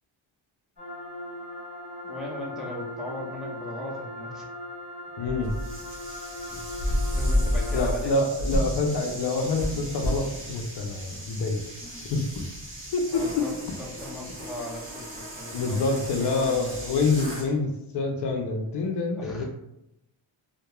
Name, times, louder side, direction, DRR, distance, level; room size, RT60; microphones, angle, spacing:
sound 1, 0.8-7.9, left 1 dB, 25° left, 1.2 m, -39 dB
voice 1, 2.0-4.5 7.1-8.2 13.1-17.1 18.3-18.4 18.8-19.4, left 1 dB, ahead, -3 dB, 0.4 m, -38 dB
voice 2, 5.2-5.5 7.7-11.6 12.1-12.5 12.9-13.3 15.5-19.4, left 3 dB, 60° left, 3 dB, 0.5 m, -27 dB
sound 2, 5.2-5.8 6.8-7.3 8.4-8.8 9.6-10.3, equal, 65° right, 0.8 m, -29 dB
sound 3, 5.5-17.5, left 1 dB, 25° right, 0.9 m, -34 dB
2.9 x 2.1 x 2.2 m, 0.86 s
cardioid pair, 100°, 48 cm